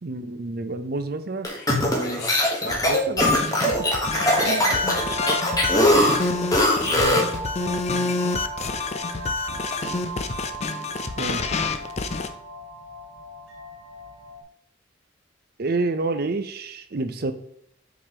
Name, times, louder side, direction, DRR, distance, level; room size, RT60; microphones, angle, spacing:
voice 1, 0.0-1.5 2.9-3.3 3.7-3.8 4.4-4.8 5.7-6.1 11.2-11.5 15.6-17.3, right 3 dB, 55° right, 9 dB, 0.7 m, -29 dB
sound 1, 1.4-7.4, left 1 dB, 20° left, 1.3 m, -21 dB
voice 2, 1.7-2.8 4.8-4.9 5.7-6.3 6.8-7.3, left 1 dB, 60° left, -1 dB, 1.4 m, -32 dB
sound 2, 2.8-14.4, right 2 dB, 90° right, 1.6 m, -36 dB
sound 3, 3.2-12.3, left 4 dB, 35° left, 0.5 m, -28 dB
7.8 x 4.8 x 3.0 m, 0.70 s
head